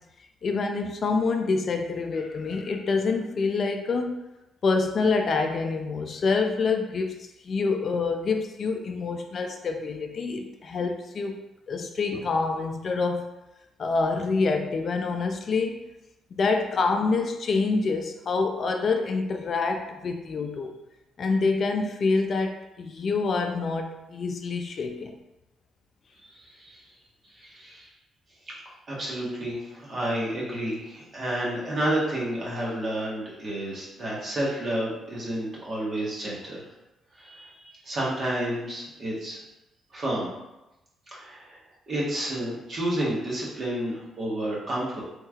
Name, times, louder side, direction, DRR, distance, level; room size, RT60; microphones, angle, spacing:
voice 1, 0.4-4.2 4.6-11.4 11.7-13.3 13.8-15.9 16.3-20.7 21.2-25.2, left 4 dB, 50° left, 4 dB, 0.3 m, -26 dB
voice 2, 26.2-26.8 27.4-27.9 28.5-28.6 28.9-36.7 37.2-39.4 39.9-40.3 41.1-41.6 41.9-45.0, right 1 dB, 45° right, -6 dB, 1.2 m, -30 dB
3.2 x 3.0 x 2.4 m, 0.95 s
cardioid pair, 90°, 0 cm